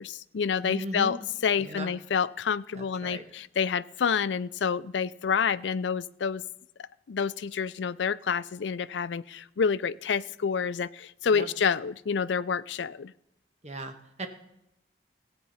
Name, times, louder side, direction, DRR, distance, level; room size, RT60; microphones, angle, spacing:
voice 1, 0.0-6.4 6.8-13.1, left 6 dB, 85° left, 17 dB, 0.4 m, -28 dB
voice 2, 0.6-1.2 1.6-1.9 2.7-3.2 11.3-11.5 13.6-14.3, right 1 dB, 35° right, 6 dB, 1.4 m, -37 dB
16.0 x 8.6 x 5.6 m, 0.85 s
head